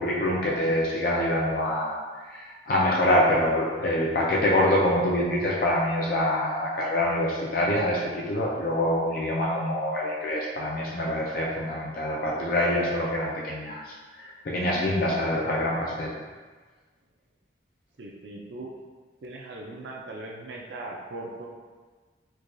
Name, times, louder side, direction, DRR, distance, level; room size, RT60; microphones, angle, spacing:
voice 1, 0.0-2.0 2.3-16.1, left 1 dB, 50° left, -4 dB, 0.4 m, -25 dB
voice 2, 18.0-18.7 19.2-21.5, right 2 dB, 70° right, -1 dB, 0.4 m, -39 dB
4.6 x 2.3 x 2.5 m, 1.4 s
head